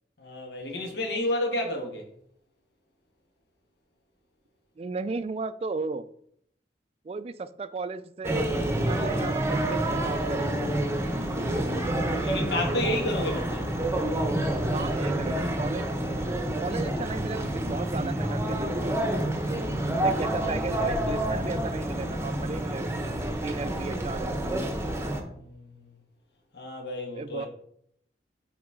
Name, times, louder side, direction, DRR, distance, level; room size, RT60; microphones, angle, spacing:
voice 1, 0.2-2.0 11.7-13.7 24.7-25.9 26.5-27.5, left 1 dB, 75° left, 1.3 m, -32 dB
voice 2, 4.8-6.1 7.0-8.5 8.9-10.6 14.7-16.1 16.6-18.9 19.4-19.6 20.0-22.9 23.4-24.6 27.1-27.5, right 4 dB, 35° right, 0.3 m, -35 dB
sound 1, 8.2-25.2, right 1 dB, 15° right, 0.8 m, -28 dB
8.7 x 3.9 x 3.6 m
head